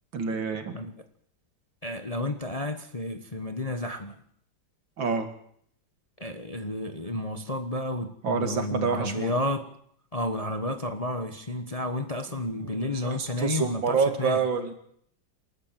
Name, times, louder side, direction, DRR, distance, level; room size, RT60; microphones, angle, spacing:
voice 1, 0.1-0.8 5.0-5.3 8.2-9.3 12.6-14.7, right 5 dB, 75° right, 7 dB, 2.9 m, -27 dB
voice 2, 1.8-4.2 6.2-9.7 10.1-14.4, left 1 dB, 25° left, 8 dB, 1.0 m, -31 dB
28.0 x 13.0 x 7.6 m, 0.65 s
omnidirectional pair, 2.1 m